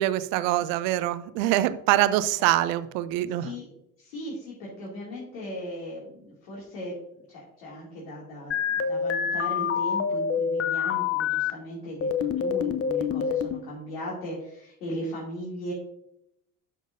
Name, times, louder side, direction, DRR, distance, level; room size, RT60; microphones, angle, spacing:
voice 1, 0.0-3.5, right 14 dB, 60° right, 15 dB, 0.6 m, -24 dB
voice 2, 4.0-15.7, equal, 65° left, -6 dB, 2.6 m, -38 dB
sound 1, 8.5-11.5 12.0-13.6, left 7 dB, 30° left, 0.7 m, -26 dB
12.0 x 6.3 x 2.6 m, 0.80 s
figure-of-eight pair, 60°, 46 cm